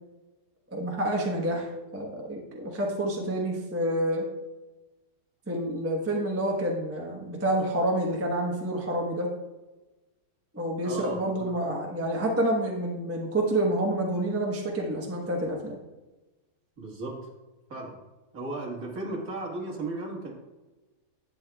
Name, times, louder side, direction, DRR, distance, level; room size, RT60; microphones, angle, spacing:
voice 1, 0.7-4.3 5.5-9.3 10.5-15.8, right 1 dB, 10° right, -1 dB, 0.9 m, -28 dB
voice 2, 10.8-11.6 16.8-17.2 17.7-17.9 18.3-20.3, right 2 dB, 55° right, -2 dB, 2.1 m, -35 dB
11.0 x 8.6 x 2.3 m, 1.1 s
omnidirectional pair, 1.9 m